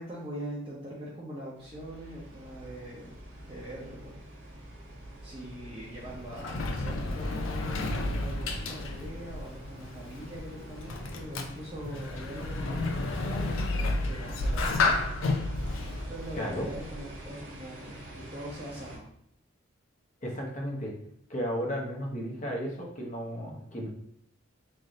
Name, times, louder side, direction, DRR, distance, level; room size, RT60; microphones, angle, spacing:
voice 1, 0.0-3.1 3.4-4.2 4.5-4.6 5.2-15.0 16.1-18.0 18.3-19.0, right 1 dB, 25° right, -8 dB, 0.7 m, -42 dB
sound 1, 1.6-19.0, right 1 dB, 65° right, 0.9 m, -46 dB
Sliding door, 5.9-17.3, left 2 dB, 70° left, 0.4 m, -32 dB
voice 2, 16.4-16.7 20.2-20.9 21.3-23.9, equal, 35° left, -2 dB, 0.8 m, -34 dB
3.3 x 2.6 x 3.7 m, 0.69 s
head